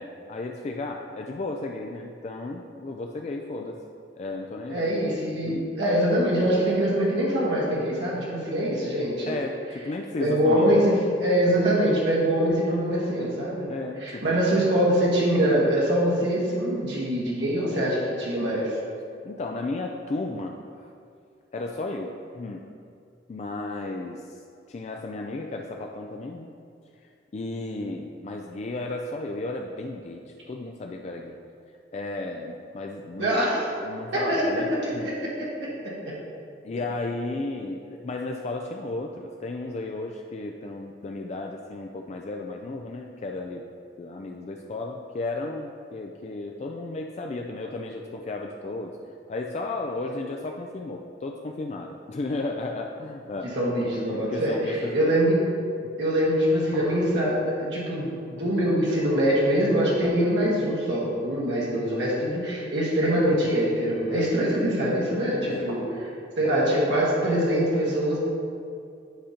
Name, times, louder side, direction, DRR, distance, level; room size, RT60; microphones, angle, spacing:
voice 1, 0.0-3.8 4.1-4.9 5.4-5.7 9.3-10.9 13.7-14.4 19.2-20.9 21.5-22.7 23.3-24.4 24.7-26.5 27.0-31.4 31.9-33.4 33.8-35.1 36.6-43.7 44.0-49.0 49.3-53.6 54.1-55.2 55.8-55.9 64.0-64.4 65.5-65.7, left 2 dB, 35° left, 2 dB, 0.3 m, -34 dB
voice 2, 4.7-9.4 10.2-11.0 11.2-13.7 14.0-18.7 33.2-33.6 34.3-34.4 34.8-35.5 53.5-55.4 56.0-65.8 66.4-68.2, equal, 80° right, -6 dB, 1.5 m, -24 dB
10.0 x 5.0 x 2.8 m, 2.4 s
head